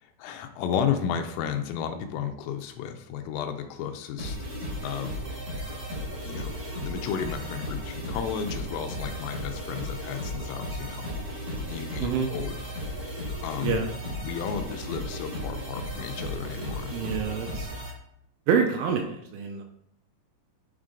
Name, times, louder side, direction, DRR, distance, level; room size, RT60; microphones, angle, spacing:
voice 1, 0.2-4.4 4.8-5.2 6.3-11.1 11.7-12.6 13.4-13.8 14.2-17.0, left 8 dB, 80° left, 6 dB, 3.1 m, -33 dB
sound 1, 4.2-17.9, equal, 60° right, 0.9 m, -35 dB
voice 2, 16.9-17.7 18.5-19.7, right 6 dB, 80° right, 3 dB, 2.9 m, -26 dB
10.5 x 4.4 x 3.8 m, 0.74 s
omnidirectional pair, 6.0 m